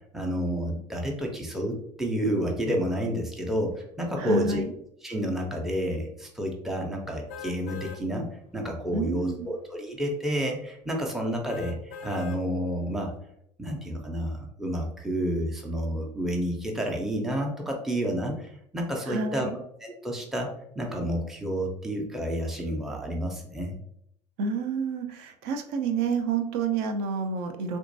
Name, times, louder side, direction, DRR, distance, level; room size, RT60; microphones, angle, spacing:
voice 1, 0.1-4.6 5.0-8.3 8.5-13.1 13.6-19.5 19.8-20.5 20.8-23.8, equal, ahead, 0 dB, 0.6 m, -30 dB
voice 2, 4.2-4.7 8.9-9.5 19.1-19.6 24.4-27.8, right 4 dB, 50° right, 6 dB, 0.6 m, -29 dB
sound 1, 7.3-8.0 8.6-8.7 11.5-12.4 13.0-13.1, left 6 dB, 40° left, 0.5 m, -41 dB
3.5 x 2.9 x 2.6 m, 0.72 s
figure-of-eight pair, 70°, 21 cm